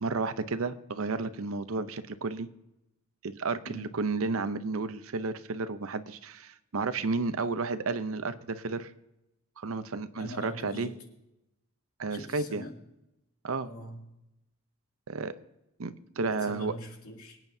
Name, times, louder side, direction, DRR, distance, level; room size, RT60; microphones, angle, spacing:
voice 1, 0.0-2.5 3.2-8.9 9.6-10.9 12.0-12.6 13.4-13.7 15.1-15.3 15.8-16.7, right 3 dB, 75° right, 12 dB, 0.7 m, -32 dB
voice 2, 10.1-11.0 12.1-12.8 13.6-14.1 16.4-17.4, left 1 dB, 90° left, 1 dB, 2.6 m, -43 dB
24.0 x 9.1 x 2.7 m, 0.90 s
head